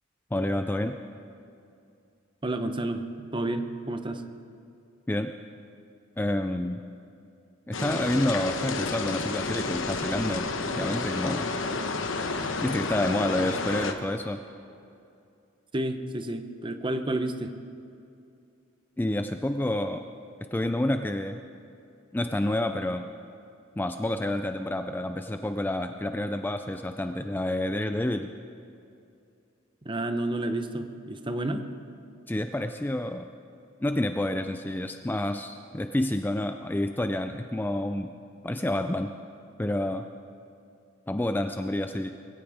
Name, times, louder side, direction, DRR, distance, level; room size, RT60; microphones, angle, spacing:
voice 1, 0.3-1.0 5.1-5.3 6.2-6.8 7.7-10.5 10.7-11.5 12.6-14.4 19.0-20.0 20.5-21.4 22.1-23.1 23.8-28.3 32.3-33.3 33.8-38.1 38.4-39.1 39.6-40.1 41.1-42.2, left 1 dB, 10° left, 7 dB, 0.4 m, -29 dB
voice 2, 2.4-3.0 3.3-4.3 15.7-17.5 29.8-31.7, right 1 dB, 25° right, 8 dB, 0.8 m, -30 dB
sound 1, 7.7-13.9, left 3 dB, 70° left, 1.1 m, -30 dB
22.0 x 16.5 x 3.6 m, 2.5 s
head